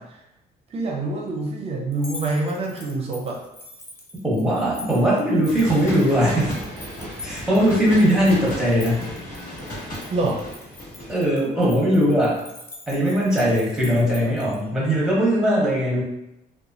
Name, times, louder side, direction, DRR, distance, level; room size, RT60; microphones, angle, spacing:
voice 1, 0.7-3.4 10.1-10.4, right 2 dB, 40° right, 0 dB, 0.5 m, -26 dB
sound 1, 1.9-14.6, left 2 dB, 15° left, 0.4 m, -44 dB
voice 2, 4.2-6.6 7.2-9.1 11.1-12.4 12.9-16.0, equal, 5° right, -6 dB, 0.9 m, -20 dB
sound 2, 5.4-11.3, equal, 60° left, 1.4 m, -35 dB
2.9 x 2.2 x 2.5 m, 0.87 s
cardioid pair, 165°, 16 cm